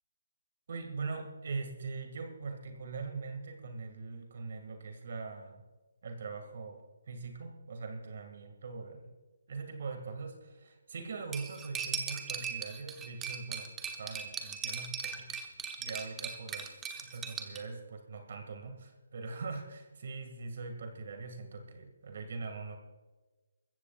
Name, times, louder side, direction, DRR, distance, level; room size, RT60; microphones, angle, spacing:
voice 1, 0.7-5.6 6.0-6.8 7.1-9.1 9.5-13.7 14.0-15.3 15.8-16.7 17.0-22.8, right 4 dB, 55° right, 5 dB, 2.2 m, -42 dB
Cutlery silverware, 11.3-17.6, right 6 dB, 10° right, 1.0 m, -39 dB
22.0 x 15.0 x 2.5 m, 1.2 s
figure-of-eight pair, 150°, 0 cm